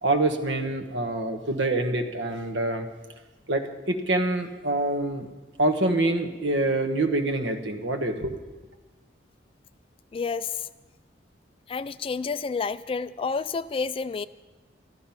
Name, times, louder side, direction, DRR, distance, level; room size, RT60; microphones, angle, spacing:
voice 1, 0.0-2.9 3.5-5.3 5.6-8.4, right 2 dB, 80° right, 6 dB, 1.3 m, -26 dB
voice 2, 10.1-10.5 11.7-14.3, left 4 dB, 30° left, 15 dB, 0.3 m, -29 dB
13.5 x 12.5 x 5.8 m, 1.2 s
head